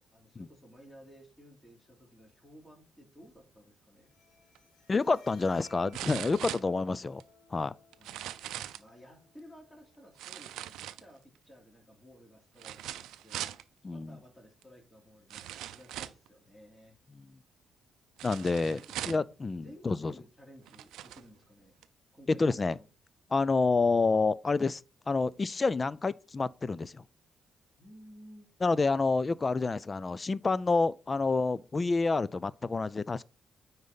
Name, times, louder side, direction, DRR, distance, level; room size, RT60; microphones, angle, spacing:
voice 1, 0.0-4.1 8.0-8.3 8.6-13.4 13.9-17.0 18.7-19.0 19.6-21.7 22.1-22.9 27.8-28.5, equal, 10° left, 2.9 m, -55 dB
Bowed string instrument, 4.0-11.0, left 4 dB, 80° left, 1.4 m, -61 dB
sound 1, 4.5-4.6 5.9-7.2 7.9-8.9 10.2-11.4 12.6-13.6 14.6-14.7 15.3-16.3 18.2-19.3 20.1-20.2 20.6-21.2 21.8-21.9, right 12 dB, 90° right, 0.4 m, -40 dB
voice 2, 4.9-7.2 7.5-7.7 13.8-14.2 18.2-18.8 19.1-20.1 22.4-22.8 23.3-24.8 25.1-27.0 28.6-33.2, left 3 dB, 30° left, 0.4 m, -28 dB
9.4 x 4.0 x 3.9 m
cardioid pair, 80°, 0 cm